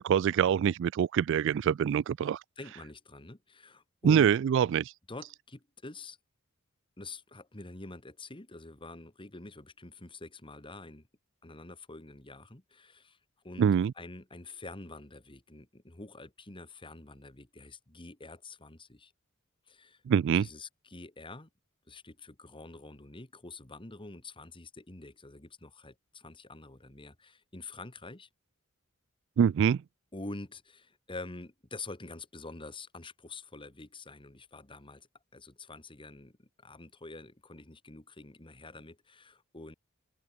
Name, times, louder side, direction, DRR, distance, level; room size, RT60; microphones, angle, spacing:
voice 1, 0.0-2.4 4.0-4.9 13.6-13.9 20.1-20.5 29.4-29.8, right 8 dB, 60° right, 0.3 m, -25 dB
voice 2, 2.6-4.3 5.1-6.2 7.0-11.1 11.4-13.2 13.4-13.7 14.0-19.1 19.7-20.0 20.3-21.5 21.9-28.3 30.1-39.7, left 2 dB, 25° left, 1.8 m, -47 dB
open air
head